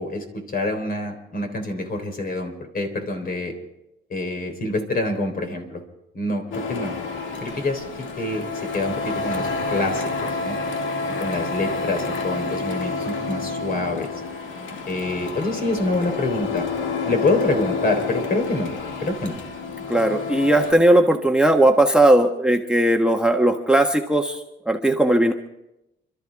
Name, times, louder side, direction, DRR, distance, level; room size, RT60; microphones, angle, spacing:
voice 1, 0.0-3.5 4.1-5.8 6.1-6.9 7.4-8.5 8.7-10.6 11.2-14.1 14.9-16.7 17.1-18.7 19.0-19.4, left 2 dB, 45° left, 4 dB, 3.9 m, -26 dB
Printer, 6.5-20.7, left 4 dB, 75° left, 1.9 m, -29 dB
voice 2, 19.9-25.3, right 1 dB, 5° right, 4 dB, 1.2 m, -18 dB
29.5 x 12.5 x 3.6 m, 0.89 s
cardioid pair, 90°, 20 cm